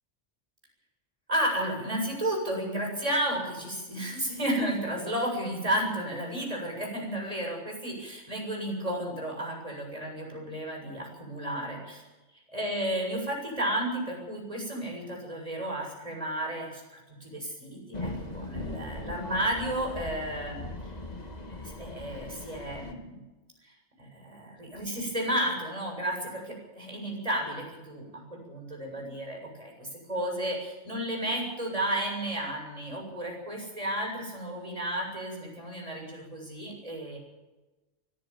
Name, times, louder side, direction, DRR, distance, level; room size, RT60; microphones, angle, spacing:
voice 1, 1.3-12.0 12.5-20.6 21.5-23.2 23.6-37.2, right 1 dB, 30° right, 0 dB, 7.8 m, -32 dB
sound 1, 17.9-22.9, left 2 dB, 35° left, 2.2 m, -39 dB
24.0 x 15.5 x 7.3 m, 1.1 s
omnidirectional pair, 1.3 m